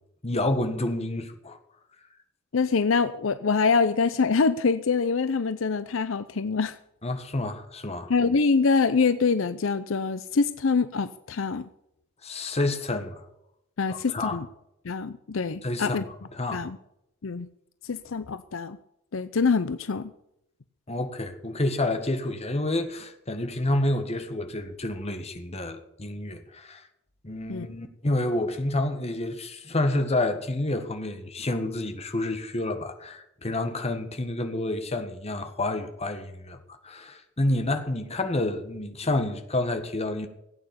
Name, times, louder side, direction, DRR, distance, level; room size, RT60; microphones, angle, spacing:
voice 1, 0.2-1.6 7.0-8.1 12.2-13.2 13.9-14.4 15.6-16.0 16.4-16.6 20.9-26.8 27.2-36.6 36.8-40.3, left 2 dB, 30° left, 1.6 m, -29 dB
voice 2, 2.5-6.8 8.1-11.7 13.8-14.5 14.8-16.0 16.5-16.8 17.2-17.5 17.8-18.8 19.1-20.1 27.5-27.7, left 4 dB, 70° left, 0.6 m, -25 dB
16.5 x 8.9 x 7.0 m
head